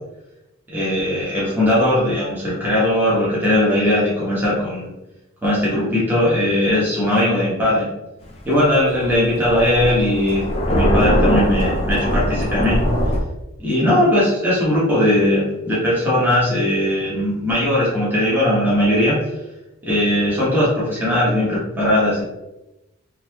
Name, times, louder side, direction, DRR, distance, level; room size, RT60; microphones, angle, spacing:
voice 1, 0.7-4.9 5.4-7.9 8.4-12.8 13.6-19.2 19.8-22.2, left 1 dB, 10° right, -9 dB, 1.3 m, -19 dB
Thunder, 8.2-13.2, equal, 30° left, 0.6 m, -21 dB
4.3 x 2.8 x 2.9 m, 0.95 s
head